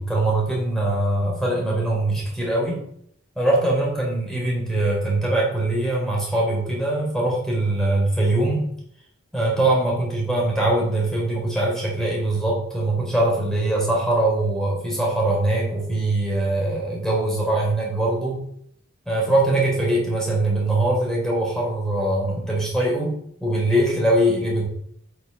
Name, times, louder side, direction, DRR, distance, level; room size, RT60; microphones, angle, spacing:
voice 1, 0.0-2.8 3.4-8.7 9.3-18.4 19.1-24.7, right 1 dB, ahead, -3 dB, 4.0 m, -22 dB
8.7 x 6.4 x 6.6 m, 0.69 s
head